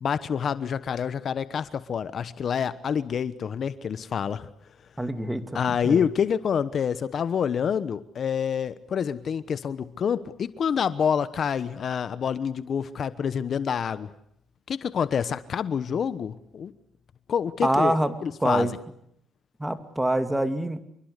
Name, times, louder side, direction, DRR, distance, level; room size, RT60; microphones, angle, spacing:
voice 1, 0.0-4.5 5.5-14.1 14.7-16.7 17.3-17.9 18.2-18.7, left 7 dB, 55° left, 14 dB, 1.1 m, -27 dB
voice 2, 5.0-6.0 17.6-18.1 18.4-18.8 19.6-20.8, right 1 dB, 10° right, 9 dB, 2.5 m, -25 dB
26.5 x 22.5 x 8.3 m, 0.72 s
cardioid pair, 90°, 0 cm